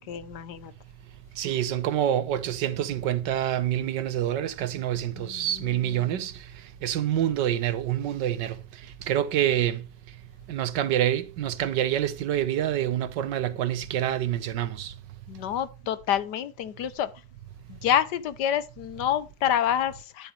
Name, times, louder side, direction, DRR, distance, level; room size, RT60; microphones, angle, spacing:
voice 1, 0.1-0.7 5.2-6.2 15.3-17.1 17.7-20.3, left 10 dB, 75° left, 1.4 m, -28 dB
voice 2, 1.4-6.3 6.8-8.6 9.1-9.8 10.5-14.9, right 11 dB, 85° right, 1.6 m, -26 dB
10.0 x 8.1 x 3.2 m
omnidirectional pair, 1.9 m